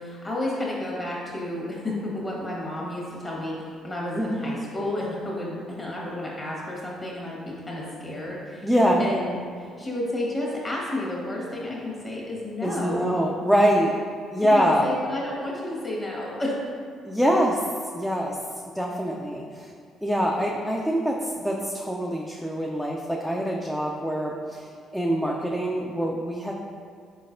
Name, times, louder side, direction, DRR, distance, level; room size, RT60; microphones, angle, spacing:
voice 1, 0.0-8.7 9.0-13.1 14.4-16.5, left 1 dB, 30° left, -4 dB, 1.4 m, -31 dB
voice 2, 8.6-9.0 12.6-13.9 14.3-14.9 17.0-17.6 17.9-18.4 18.7-19.7 20.0-26.5, equal, ahead, -2 dB, 0.4 m, -24 dB
4.2 x 3.9 x 2.6 m, 2.2 s
hypercardioid pair, 50°, 0 cm